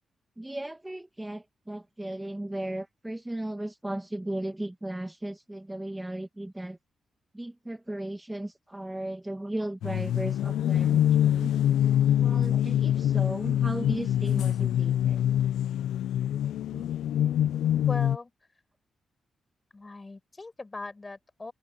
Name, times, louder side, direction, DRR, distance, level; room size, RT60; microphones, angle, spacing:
voice 1, 0.4-6.8 7.3-11.6 12.2-15.3, right 1 dB, 15° right, 1.7 m, -36 dB
sound 1, 9.8-18.2, left 11 dB, 90° left, 0.5 m, -25 dB
voice 2, 17.9-18.3 19.7-21.5, left 3 dB, 30° left, 8.0 m, -40 dB
open air
cardioid pair, 65°, 0 cm